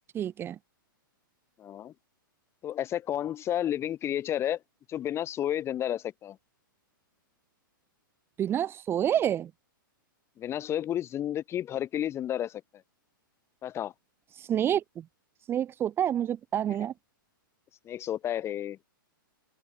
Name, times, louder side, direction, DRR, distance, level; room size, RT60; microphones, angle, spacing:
voice 1, 0.1-0.6 8.4-9.5 14.4-15.0 15.5-16.9, right 10 dB, 20° right, 1.3 m, -28 dB
voice 2, 1.6-1.9 2.6-4.6 4.9-6.4 10.4-12.6 13.6-13.9 17.9-18.8, left 11 dB, 20° left, 3.6 m, -31 dB
hypercardioid pair, 135°, 12 cm